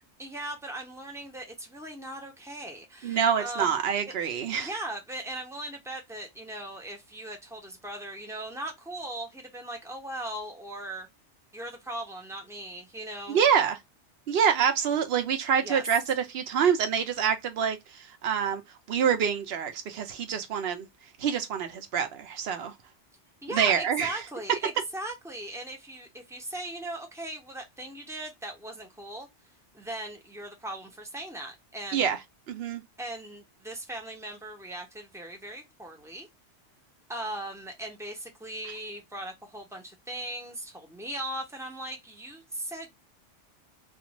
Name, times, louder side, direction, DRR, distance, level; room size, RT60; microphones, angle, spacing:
voice 1, 0.2-3.8 4.6-11.1 11.5-13.4 15.6-15.8 23.4-29.3 29.7-32.1 33.0-36.3 37.1-43.0, right 1 dB, 5° right, 0.6 m, -39 dB
voice 2, 3.0-4.7 13.3-13.8 14.3-18.6 18.9-20.9 21.2-22.7 23.5-24.2 31.9-32.2 32.5-32.8, right 7 dB, 60° right, 0.8 m, -26 dB
2.5 x 2.4 x 2.9 m
omnidirectional pair, 1.2 m